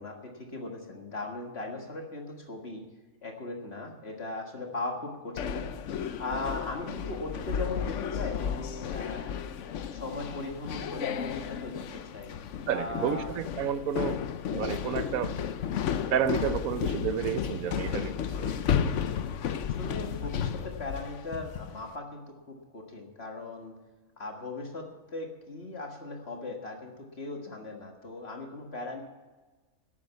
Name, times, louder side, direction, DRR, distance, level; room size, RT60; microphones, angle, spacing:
voice 1, 0.0-2.9 3.2-5.7 6.2-9.3 9.9-12.3 12.7-13.3 19.6-23.7 24.2-29.0, left 2 dB, 50° left, 2 dB, 1.9 m, -38 dB
sound 1, 5.4-21.8, left 8 dB, 65° left, 1.0 m, -33 dB
voice 2, 12.7-14.2 14.5-15.4 16.1-18.1 18.4-18.5, right 8 dB, 85° right, 13 dB, 1.2 m, -30 dB
12.0 x 8.6 x 8.2 m, 1.2 s
omnidirectional pair, 1.4 m